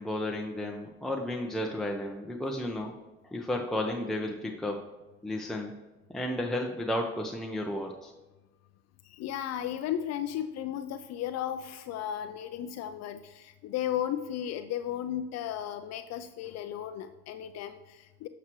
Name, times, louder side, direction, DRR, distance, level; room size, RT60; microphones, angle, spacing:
voice 1, 0.0-2.9 3.2-4.8 5.2-5.8 6.1-8.1, left 1 dB, ahead, 0 dB, 0.9 m, -33 dB
voice 2, 9.0-18.3, left 10 dB, 60° left, 10 dB, 0.5 m, -35 dB
9.5 x 6.1 x 3.1 m, 1.1 s
hypercardioid pair, 70°, 30 cm